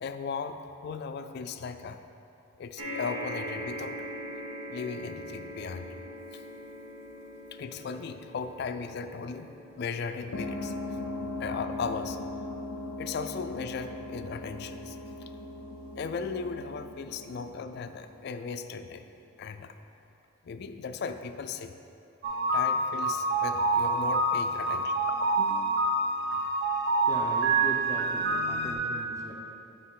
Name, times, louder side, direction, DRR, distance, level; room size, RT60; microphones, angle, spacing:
voice 1, 0.0-2.0 2.6-4.0 4.7-5.9 6.3-6.4 7.5-12.2 13.0-15.0 16.0-19.0 19.4-19.7 20.4-21.7 22.5-25.9, left 5 dB, 50° left, 8 dB, 0.3 m, -37 dB
sound 1, 2.8-17.3 18.1-18.2 18.4-18.5, equal, 90° right, 1.3 m, -43 dB
sound 2, 10.3-18.5, left 2 dB, 90° left, 0.6 m, -39 dB
sound 3, 22.2-28.7, right 2 dB, 50° right, 0.8 m, -27 dB
voice 2, 27.1-29.3, equal, 15° right, -2 dB, 0.6 m, -39 dB
8.6 x 4.9 x 3.7 m, 2.8 s
head